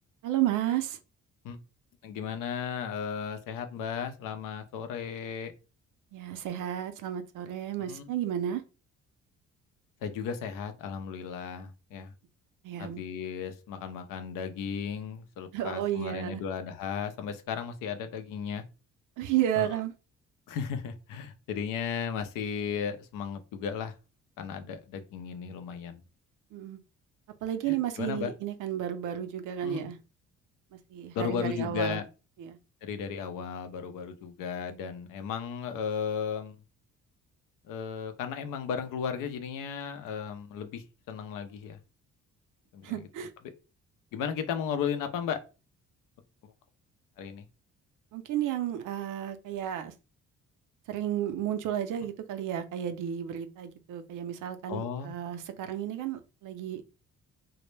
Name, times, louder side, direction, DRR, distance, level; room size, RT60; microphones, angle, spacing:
voice 1, 0.2-1.0 6.1-8.6 12.6-13.0 15.5-16.4 19.2-19.9 26.5-26.8 27.4-30.0 30.7-32.0 32.4-32.6 42.8-43.3 48.1-49.9 50.9-56.8, right 11 dB, 75° right, 0.5 m, -32 dB
voice 2, 2.0-5.5 7.8-8.1 10.0-12.1 12.8-18.6 19.6-19.7 20.5-23.9 24.4-26.0 27.7-28.3 29.6-29.9 31.1-32.0 32.8-36.6 37.6-41.8 42.7-43.0 44.1-45.4 47.2-47.4 54.7-55.1, left 7 dB, 80° left, 0.5 m, -35 dB
2.1 x 2.0 x 3.1 m
cardioid pair, 75°, 32 cm